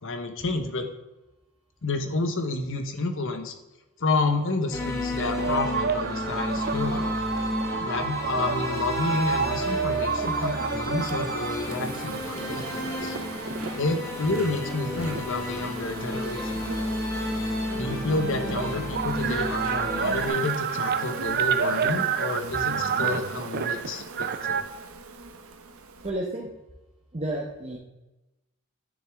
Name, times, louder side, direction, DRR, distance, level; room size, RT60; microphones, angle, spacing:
voice 1, 0.0-0.9 1.8-3.5 4.0-7.1 7.8-13.2 13.7-16.9 17.7-24.6, left 3 dB, 65° left, 7 dB, 1.1 m, -30 dB
sound 1, 4.7-20.3, left 1 dB, 15° left, 1.6 m, -32 dB
sound 2, 5.2-14.0 14.6-16.4 17.6-17.7 17.8-24.6, right 6 dB, 50° right, 0.5 m, -29 dB
Insect, 8.7-26.1, right 3 dB, 75° right, 1.0 m, -41 dB
voice 2, 26.0-26.5 27.1-27.8, right 1 dB, 30° right, -2 dB, 1.0 m, -31 dB
10.0 x 6.8 x 3.6 m, 1.0 s
head